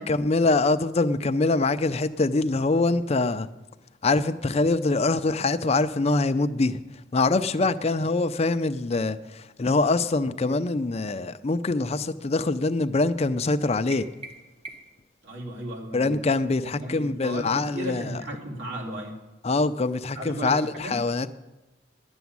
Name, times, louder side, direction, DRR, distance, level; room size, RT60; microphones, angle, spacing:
voice 1, 0.0-3.5 4.0-6.8 7.1-9.2 9.6-14.1 15.9-18.1 19.4-21.3, left 3 dB, 35° left, 11 dB, 0.5 m, -24 dB
sound 1, 13.9-15.1, right 2 dB, 30° right, 1.0 m, -43 dB
voice 2, 15.2-16.2 16.6-19.1 20.1-21.0, right 1 dB, 70° right, -2 dB, 2.8 m, -35 dB
11.0 x 7.1 x 9.5 m, 1.0 s
head